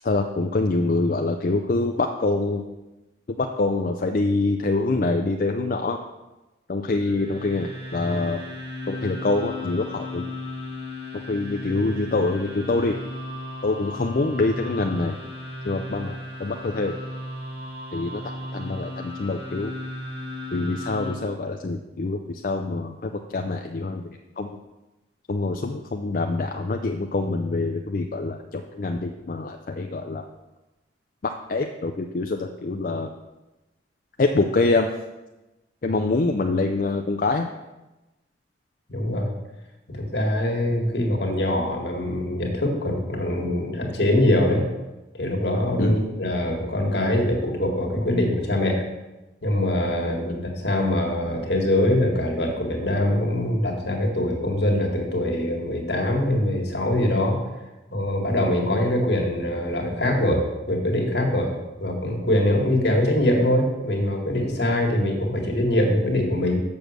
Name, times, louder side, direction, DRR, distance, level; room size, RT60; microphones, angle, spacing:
voice 1, 0.0-2.6 3.3-6.0 6.7-8.4 8.9-10.3 11.3-13.0 13.6-15.2 15.6-16.9 17.9-18.2 18.5-19.7 20.5-24.6 25.3-30.3 31.2-33.1 34.2-34.9 35.8-37.5 45.8-46.0, left 3 dB, 50° left, 4 dB, 0.5 m, -25 dB
sound 1, 6.8-21.1, left 1 dB, 75° right, 2.6 m, -35 dB
voice 2, 38.9-39.3 39.9-44.6 45.1-48.8 49.4-57.4 57.9-61.5 61.8-66.6, left 1 dB, 75° left, 0 dB, 1.8 m, -23 dB
7.0 x 6.2 x 6.5 m, 1.1 s
head